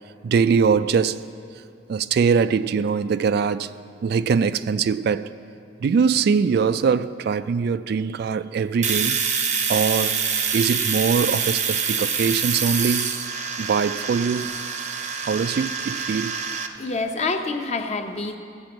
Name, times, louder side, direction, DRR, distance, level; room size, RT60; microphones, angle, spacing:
voice 1, 0.2-1.3 1.9-3.7 4.0-5.3 5.8-9.2 9.7-10.2 10.5-13.1 13.6-14.5 15.3-16.4, right 6 dB, 60° right, 0.3 m, -22 dB
Domestic sounds home sounds, 8.8-16.7, right 6 dB, 45° right, 0.7 m, -26 dB
voice 2, 16.8-18.4, left 3 dB, 40° left, 0.7 m, -27 dB
15.0 x 5.2 x 7.7 m
head